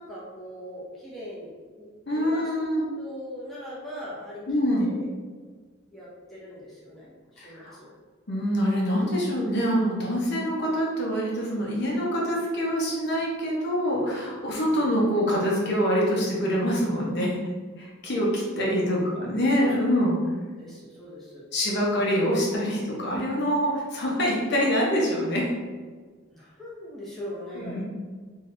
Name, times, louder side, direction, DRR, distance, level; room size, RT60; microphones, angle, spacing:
voice 1, 0.0-2.5 2.8-4.4 4.8-5.1 5.9-7.9 14.5-14.8 18.5-18.9 19.2-19.7 20.6-21.4 23.1-23.2 26.3-27.8, equal, ahead, -8 dB, 0.7 m, -41 dB
voice 2, 2.1-2.8 4.5-4.9 7.4-7.7 8.3-17.3 17.8-20.2 21.5-25.5 27.6-27.8, equal, 55° left, -3 dB, 0.7 m, -25 dB
3.4 x 2.6 x 2.4 m, 1.5 s
head